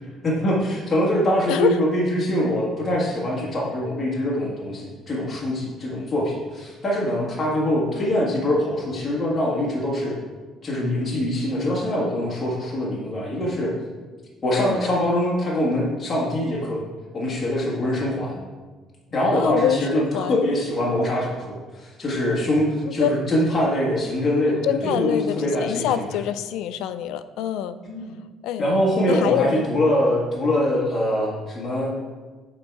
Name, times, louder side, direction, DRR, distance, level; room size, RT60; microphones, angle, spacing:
voice 1, 0.2-10.1 10.6-13.7 14.4-16.8 17.1-18.4 19.1-25.9 27.9-28.1 28.6-31.9, left 1 dB, 20° left, -5 dB, 1.6 m, -23 dB
voice 2, 14.4-14.8 19.3-20.4 22.8-23.2 24.6-27.8 28.4-28.7 29.1-29.6, left 10 dB, 80° left, 12 dB, 0.4 m, -25 dB
8.8 x 3.8 x 4.7 m, 1.4 s
cardioid pair, 150°, 0 cm